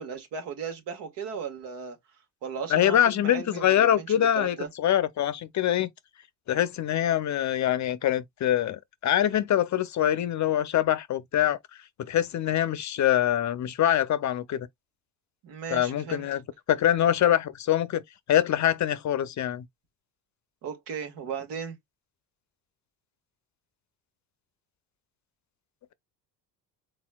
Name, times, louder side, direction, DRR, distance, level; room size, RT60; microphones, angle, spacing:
voice 1, 0.0-2.0 2.4-4.7 15.4-16.3 20.6-21.8, right 6 dB, 70° right, 1.7 m, -36 dB
voice 2, 2.7-5.9 6.5-11.6 12.0-14.7 15.7-16.4 16.7-18.0 18.3-19.7, left 11 dB, 45° left, 0.6 m, -24 dB
4.2 x 4.1 x 2.2 m
supercardioid pair, 75°, 42 cm